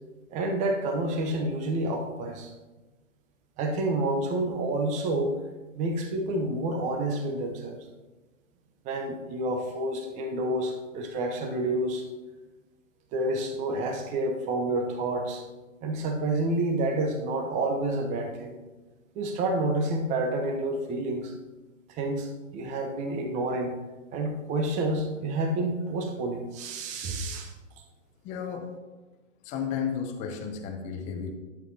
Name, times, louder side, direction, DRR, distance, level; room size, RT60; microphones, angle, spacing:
voice 1, 0.3-2.5 3.6-5.3 5.8-7.8 8.8-12.0 13.1-15.5 15.8-18.6 19.2-21.3 21.9-23.8 24.1-27.5, right 2 dB, 20° right, 4 dB, 0.8 m, -29 dB
voice 2, 28.2-28.7 29.4-31.3, left 7 dB, 20° left, 4 dB, 0.7 m, -33 dB
11.5 x 7.4 x 2.8 m, 1.2 s
hypercardioid pair, 130°, 39 cm